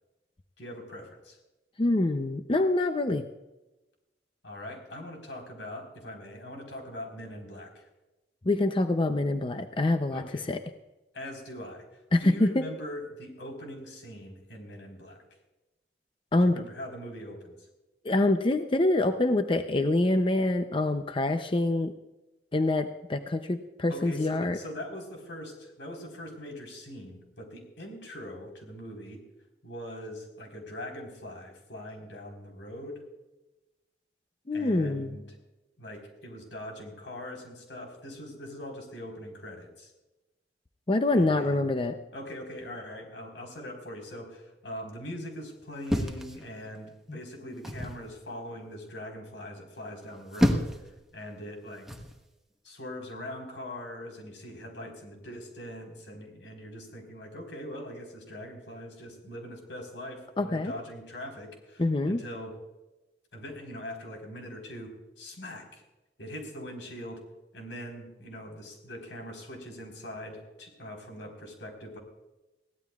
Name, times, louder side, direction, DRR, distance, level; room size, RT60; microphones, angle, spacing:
voice 1, 0.6-1.4 4.4-7.9 10.1-10.4 11.1-11.9 12.2-15.2 16.4-17.5 23.9-29.2 29.6-33.0 34.5-35.4 35.8-39.9 41.1-41.7 42.1-50.7 51.1-51.9 52.6-62.5 63.3-65.8 66.2-67.2 67.5-72.0, left 1 dB, 90° left, 2 dB, 4.3 m, -42 dB
voice 2, 1.8-3.3 8.4-10.6 12.1-12.7 16.3-16.6 18.0-21.9 22.5-24.6 34.5-35.2 40.9-41.9 47.1-47.2 60.4-60.7 61.8-62.2, left 2 dB, 30° left, 7 dB, 0.6 m, -25 dB
sound 1, 45.9-46.9 47.6-48.0 50.0-50.9 51.9-52.2, equal, ahead, 1.1 m, -29 dB
22.0 x 16.0 x 2.4 m, 1.0 s
head